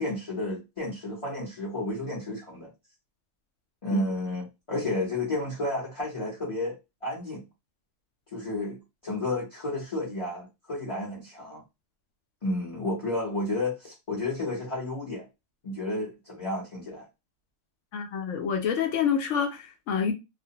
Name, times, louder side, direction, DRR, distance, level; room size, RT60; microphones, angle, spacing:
voice 1, 0.0-2.7 3.8-7.4 8.3-11.6 12.4-15.3 15.6-17.1, left 1 dB, 30° left, 0.6 m, -32 dB
voice 2, 17.9-20.1, left 7 dB, 65° left, 0.8 m, -27 dB
2.4 x 2.0 x 2.7 m
omnidirectional pair, 1.6 m